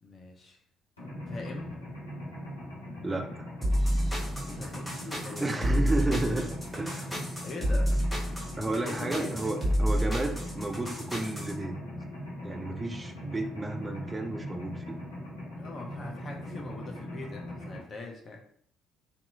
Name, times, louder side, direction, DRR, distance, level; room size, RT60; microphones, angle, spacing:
voice 1, 0.0-0.6 1.3-1.8 4.5-5.7 7.4-8.0 8.8-9.3 15.5-18.5, left 3 dB, 40° left, 1 dB, 0.6 m, -42 dB
Mechanisms, 1.0-17.8, left 1 dB, 85° left, 0.7 m, -40 dB
voice 2, 3.0-3.5 5.4-7.1 8.6-11.8 12.4-15.0, right 2 dB, 20° right, 6 dB, 0.4 m, -32 dB
sound 1, 3.6-11.5, equal, 5° left, 1.1 m, -29 dB
2.7 x 2.3 x 2.6 m, 0.64 s
figure-of-eight pair, 45°, 0 cm